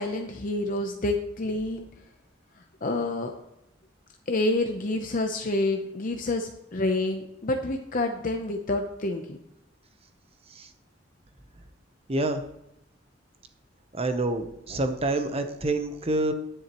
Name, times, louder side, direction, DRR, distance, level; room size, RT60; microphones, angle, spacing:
voice 1, 0.0-1.9 2.8-3.3 4.3-9.4, left 2 dB, 45° left, 4 dB, 0.7 m, -28 dB
voice 2, 12.1-12.4 13.9-16.3, right 2 dB, 30° right, 8 dB, 0.9 m, -27 dB
10.5 x 10.0 x 3.0 m, 0.85 s
head